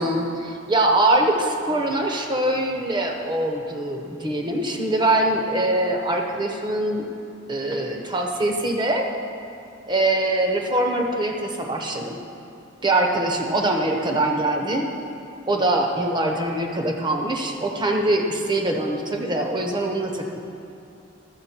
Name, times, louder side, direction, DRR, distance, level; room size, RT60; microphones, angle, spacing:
voice 1, 0.0-7.1 7.5-9.0 9.9-12.2 12.8-14.9 15.5-20.4, right 1 dB, 20° right, 2 dB, 0.9 m, -23 dB
13.0 x 7.6 x 4.4 m, 2.7 s
head